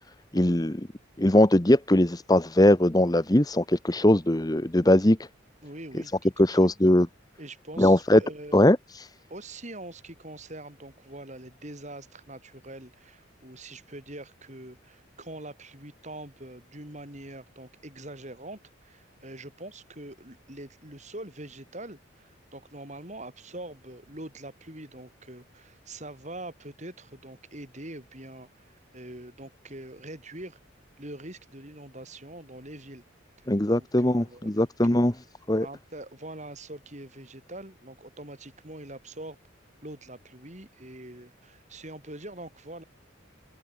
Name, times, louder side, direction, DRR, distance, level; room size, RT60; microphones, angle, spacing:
voice 1, 0.3-0.9 1.2-5.2 6.4-7.1 7.8-8.2 8.5-9.1 33.5-35.1 35.5-35.7, left 1 dB, 20° left, 1.1 m, -21 dB
voice 2, 5.6-6.7 7.4-8.6 9.3-30.6 31.0-33.0 33.7-35.0 35.6-39.4 39.8-42.8, right 1 dB, 35° right, 6.8 m, -43 dB
open air
head